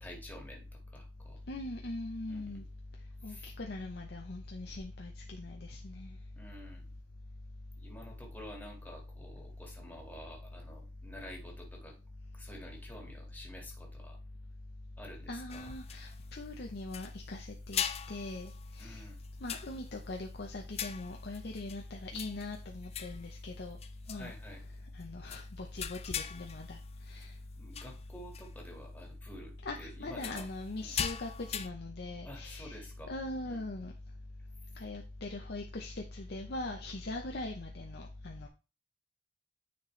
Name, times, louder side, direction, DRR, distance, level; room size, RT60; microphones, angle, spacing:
voice 1, 0.0-1.4 2.3-2.6 3.2-3.5 6.3-6.8 7.8-12.0 12.3-14.2 15.0-15.7 18.8-19.2 24.1-24.6 27.6-30.5 30.8-31.0 32.2-33.1 33.4-33.6, equal, 10° left, 1.8 m, -50 dB
voice 2, 1.5-2.6 3.2-6.2 15.3-17.8 18.1-18.5 18.8-19.0 19.4-23.8 24.1-24.3 24.9-26.8 27.1-27.3 29.6-33.9 34.8-38.5, left 2 dB, 65° left, 0.8 m, -41 dB
sound 1, 15.5-16.4 16.9-17.3 17.7-20.1 20.7-21.8 22.1-23.3 23.8-24.4 25.0-25.1 25.3-25.5 25.8-27.3 27.7-28.0 28.3-28.5 30.1-31.7, left 9 dB, 35° left, 0.4 m, -41 dB
9.4 x 4.4 x 3.2 m
head